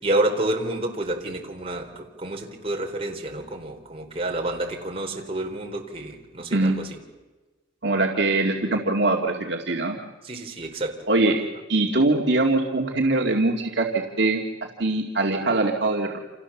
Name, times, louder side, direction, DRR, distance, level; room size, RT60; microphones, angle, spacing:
voice 1, 0.0-7.0 10.2-11.1, right 1 dB, 30° right, 1 dB, 4.1 m, -29 dB
voice 2, 7.8-10.0 11.1-11.4 11.7-14.4 14.8-16.2, right 2 dB, 60° right, 0 dB, 2.3 m, -22 dB
29.0 x 28.0 x 7.3 m, 1.2 s
head